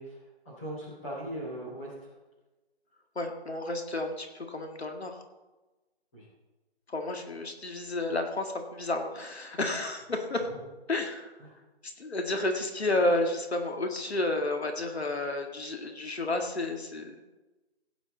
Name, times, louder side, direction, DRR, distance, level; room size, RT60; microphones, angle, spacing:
voice 1, 0.0-2.1 6.1-6.3 10.5-10.6 11.4-11.5, right 1 dB, 10° left, -7 dB, 2.6 m, -40 dB
voice 2, 3.2-5.2 6.9-10.5 10.9-11.4 11.8-17.2, left 2 dB, 70° left, 4 dB, 2.0 m, -31 dB
16.0 x 9.4 x 4.0 m, 1.1 s
figure-of-eight pair, 180°, 33 cm